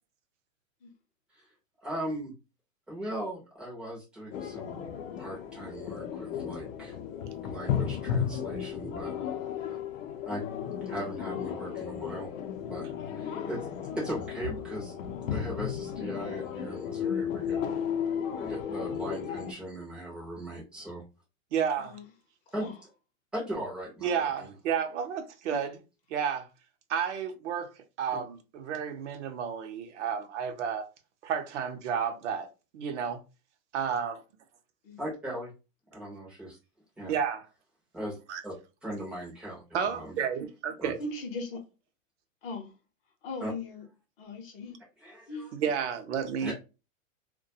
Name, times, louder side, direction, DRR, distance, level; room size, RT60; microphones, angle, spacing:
voice 1, 1.8-2.3 2.9-4.8 5.2-7.0 7.4-9.1 9.6-9.8 10.2-10.4 10.8-12.3 12.6-13.7 14.0-14.9 15.3-17.6 18.4-21.0 22.5-22.7 23.3-24.5 35.0-35.5 35.9-36.6 37.0-37.1 37.9-38.2 38.4-38.5 38.8-39.6 39.9-40.2 40.8-40.9 43.4-43.5 45.0-45.5 46.4-46.5, right 1 dB, 5° right, 0.4 m, -38 dB
sound 1, 4.3-19.5, left 8 dB, 80° left, 0.6 m, -34 dB
voice 2, 13.2-13.5 21.8-22.1 22.6-22.7 25.5-25.6 34.8-35.0 37.0-37.1 41.0-41.6 42.4-42.7 43.2-43.8 44.2-44.8 45.3-45.5, left 3 dB, 45° left, 0.7 m, -39 dB
voice 3, 21.5-22.0 24.0-25.8 26.1-26.5 26.9-27.7 28.0-30.9 31.2-32.5 32.7-33.2 33.7-34.2 37.1-37.5 38.3-38.4 39.7-41.0 45.5-46.5, right 7 dB, 60° right, 0.6 m, -31 dB
2.2 x 2.2 x 2.6 m
supercardioid pair, 150°, 40 cm